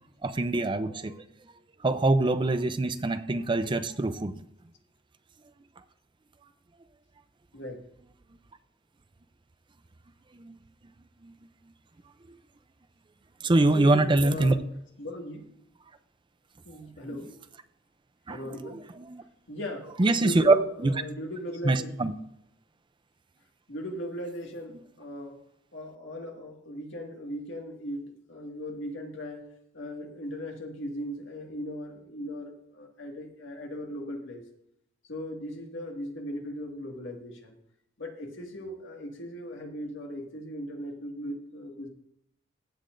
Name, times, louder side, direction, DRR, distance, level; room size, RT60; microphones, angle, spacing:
voice 1, 0.2-1.1 1.8-4.4 10.4-10.6 11.2-11.3 13.4-14.5 18.3-18.5 19.1-19.2 20.0-20.6 20.8-20.9 21.6-22.1, right 2 dB, 25° right, 11 dB, 0.5 m, -24 dB
voice 2, 7.5-7.9 13.6-14.6 15.0-15.4 16.7-17.3 18.3-18.9 19.5-22.1 23.7-25.4 25.7-28.0 28.3-29.5 29.7-34.4 35.1-37.6 38.0-41.9, equal, 70° left, 1 dB, 1.9 m, -38 dB
15.5 x 8.5 x 2.6 m, 0.73 s
head